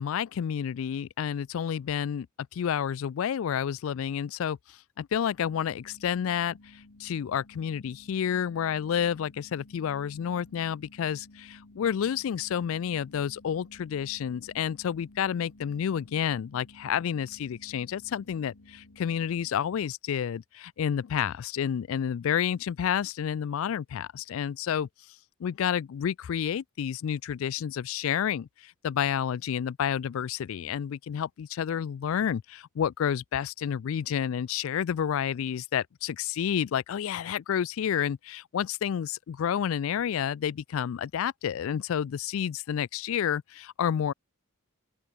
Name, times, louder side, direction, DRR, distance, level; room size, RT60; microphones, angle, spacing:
voice 1, 0.0-2.3 2.5-24.9 25.4-44.1, left 8 dB, 65° left, 0.3 m, -30 dB
sound 1, 5.4-19.5, left 2 dB, 85° left, 1.5 m, -54 dB
open air
head